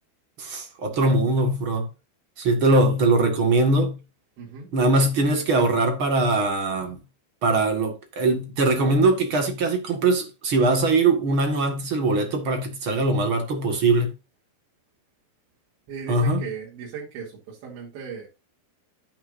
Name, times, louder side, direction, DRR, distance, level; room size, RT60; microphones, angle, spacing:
voice 1, 0.4-1.9 2.4-4.0 4.7-7.0 7.4-14.1 16.1-16.5, right 2 dB, 50° right, 1.6 m, -21 dB
voice 2, 4.4-4.7 15.9-18.3, right 6 dB, 85° right, 5.0 m, -37 dB
10.5 x 9.1 x 2.6 m
omnidirectional pair, 5.0 m